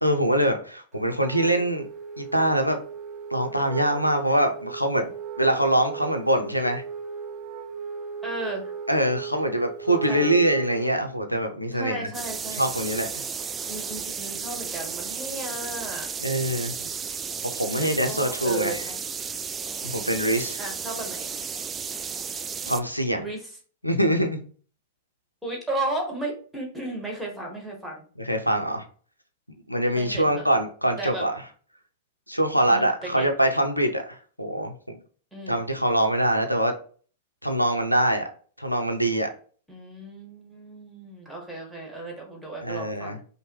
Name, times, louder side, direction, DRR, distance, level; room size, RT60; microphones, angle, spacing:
voice 1, 0.0-1.9 2.2-2.8 3.3-5.1 5.4-6.8 8.9-12.1 12.6-13.3 16.2-16.7 17.5-18.8 19.8-20.6 22.7-23.3 23.8-24.4 28.2-28.9 29.7-31.3 32.3-35.0 35.5-36.7 37.4-38.3 38.6-39.3 42.6-43.2, right 1 dB, 90° left, 6 dB, 0.5 m, -24 dB
Wind instrument woodwind instrument, 1.2-10.9, right 6 dB, 35° right, 0.7 m, -36 dB
voice 2, 8.2-8.7 10.1-10.3 11.7-12.7 13.7-16.1 17.8-19.0 20.6-21.3 23.1-23.5 25.4-28.0 30.0-30.5 31.0-31.2 32.7-33.3 35.3-35.6 39.7-43.2, right 2 dB, ahead, -1 dB, 1.4 m, -34 dB
sound 1, 12.1-22.8, right 6 dB, 20° right, 0.3 m, -33 dB
5.3 x 2.1 x 3.1 m, 0.42 s
figure-of-eight pair, 95°, 0 cm